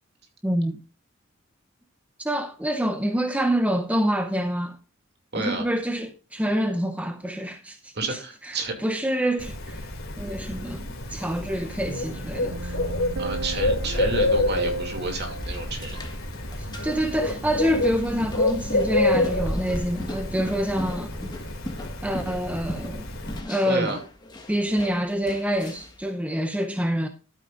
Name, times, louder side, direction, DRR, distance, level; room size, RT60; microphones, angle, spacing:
voice 1, 0.4-0.8 2.2-4.8 5.3-8.2 8.5-8.6 8.8-9.9 10.2-12.8 16.6-21.2 22.0-23.1 23.5-24.0 24.5-27.1, equal, 5° right, 0.6 m, -26 dB
voice 2, 5.3-5.7 7.9-8.8 13.2-16.0 23.7-24.0, right 2 dB, 50° right, 2.5 m, -30 dB
Bird, 9.4-23.4, left 2 dB, 70° left, 2.7 m, -28 dB
sound 1, 11.9-17.3 17.6-17.8, right 3 dB, 65° right, 0.5 m, -37 dB
sound 2, 15.3-26.0, left 1 dB, 20° left, 1.6 m, -39 dB
13.0 x 9.1 x 2.5 m
head